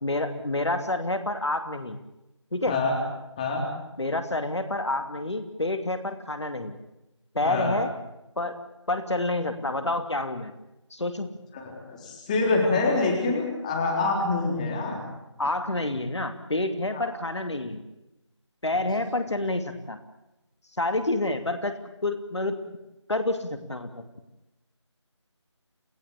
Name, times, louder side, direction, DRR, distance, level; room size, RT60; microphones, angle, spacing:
voice 1, 0.0-2.0 2.5-2.8 4.0-6.8 7.3-7.9 8.4-8.6 8.9-10.5 10.9-11.3 15.4-17.8 18.6-20.0 20.8-22.6 23.1-24.0, left 2 dB, 65° left, 8 dB, 2.7 m, -28 dB
voice 2, 7.4-7.8 11.5-15.0 16.9-17.1, left 3 dB, 15° left, 0 dB, 3.9 m, -26 dB
28.5 x 16.5 x 8.4 m, 0.92 s
figure-of-eight pair, 165°, 16 cm